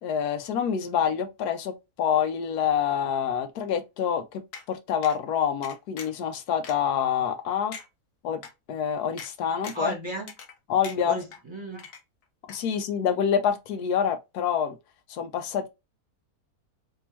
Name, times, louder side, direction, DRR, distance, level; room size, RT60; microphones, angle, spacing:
voice 1, 0.0-1.7 2.0-4.4 4.7-7.8 8.2-8.4 8.7-9.9 10.7-11.2 12.5-14.8 15.1-15.7, left 8 dB, 90° left, 1.2 m, -26 dB
sound 1, 4.5-4.7 5.0-5.2 5.6-6.2 6.6-6.7 7.3-7.4 7.7-7.9 8.4-8.5 9.2-9.3 9.6-9.9 10.3-10.6 10.8-11.4 11.8-12.2 12.5-12.6, left 6 dB, 65° left, 1.1 m, -42 dB
voice 2, 9.7-10.3 11.0-11.8, right 1 dB, 20° right, 1.2 m, -33 dB
3.7 x 3.0 x 2.9 m
omnidirectional pair, 1.6 m